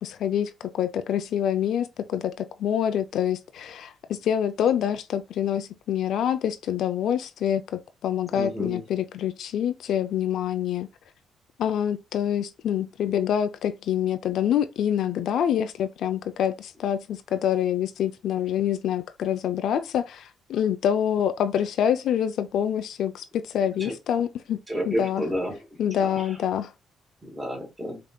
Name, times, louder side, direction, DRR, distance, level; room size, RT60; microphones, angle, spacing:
voice 1, 0.0-10.9 11.6-24.6 24.9-25.2 25.8-26.7, left 9 dB, 75° left, 0.5 m, -26 dB
voice 2, 8.3-8.9 23.8-23.9 24.7-25.6 25.9-26.3 27.2-28.0, equal, 15° right, 2.2 m, -31 dB
5.0 x 2.9 x 2.2 m
cardioid pair, 90°, 0 cm